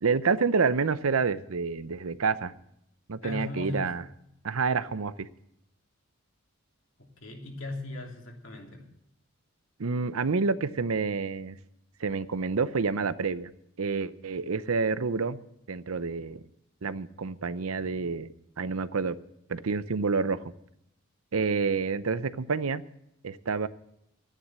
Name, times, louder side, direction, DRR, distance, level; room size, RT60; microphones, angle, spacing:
voice 1, 0.0-2.5 3.1-4.0 4.4-5.3 9.8-11.6 12.0-13.5 13.8-15.4 15.7-16.4 16.8-19.2 19.5-20.4 21.3-22.8 23.2-23.7, right 4 dB, 85° right, 15 dB, 0.7 m, -28 dB
voice 2, 3.2-3.9 7.0-8.9, left 2 dB, 65° left, 1 dB, 3.1 m, -38 dB
13.0 x 10.0 x 7.6 m, 0.78 s
head